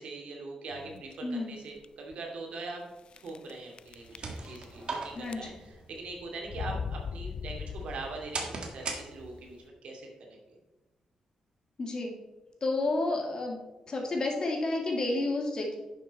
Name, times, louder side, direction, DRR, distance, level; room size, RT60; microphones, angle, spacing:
voice 1, 0.0-2.9 3.2-10.6, right 3 dB, 70° right, 0 dB, 2.4 m, -42 dB
sound 1, 0.7-1.1 1.8-1.9 2.1-2.2 3.1-3.5 3.8-4.9 5.2-5.8 6.5-8.4, left 6 dB, 55° left, 0.3 m, -39 dB
voice 2, 1.2-1.6 5.1-5.4 11.8-12.2 12.6-13.6 13.9-15.8, left 2 dB, 40° left, 1 dB, 2.1 m, -30 dB
sound 2, 3.8-9.6, right 3 dB, 50° right, 1.7 m, -41 dB
10.5 x 6.8 x 4.1 m, 1.1 s
wide cardioid pair, 135°, 2 cm